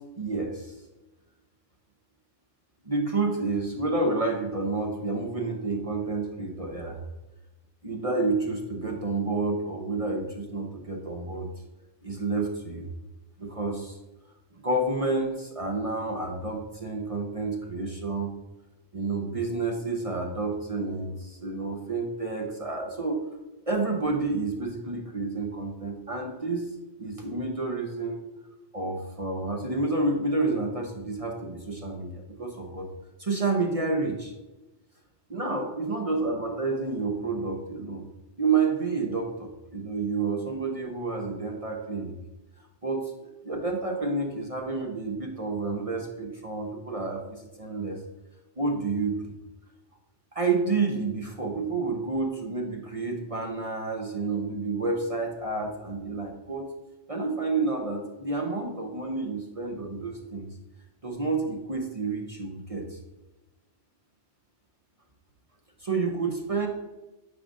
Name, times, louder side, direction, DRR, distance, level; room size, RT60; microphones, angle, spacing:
voice 1, 0.2-0.7 2.8-7.0 7.8-11.5 12.0-12.9 13.4-14.0 14.6-18.3 18.9-23.2 23.7-26.7 27.0-28.2 28.7-32.9 33.2-34.3 35.3-38.0 38.4-42.1 42.8-48.0 48.6-49.3 50.3-56.7 57.1-60.5 61.0-63.0 65.8-66.7, right 3 dB, 35° right, 1 dB, 0.8 m, -29 dB
9.4 x 4.9 x 2.6 m, 1.1 s
omnidirectional pair, 1.3 m